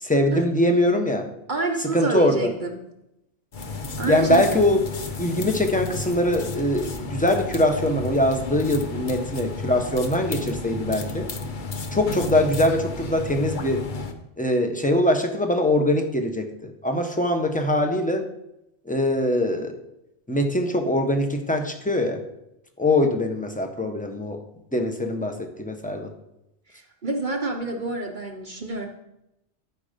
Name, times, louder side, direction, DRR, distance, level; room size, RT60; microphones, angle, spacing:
voice 1, 0.0-1.3 1.9-2.5 4.1-4.8 5.2-11.3 11.9-13.8 14.4-18.2 18.9-19.7 20.3-22.2 22.8-24.4 24.7-26.1, left 1 dB, 5° left, 4 dB, 1.1 m, -22 dB
voice 2, 1.5-2.8 4.0-4.7 26.7-28.9, right 3 dB, 45° right, 3 dB, 1.0 m, -28 dB
sound 1, 3.5-14.1, left 3 dB, 45° left, 1.0 m, -33 dB
13.0 x 5.3 x 5.2 m, 0.86 s
omnidirectional pair, 1.2 m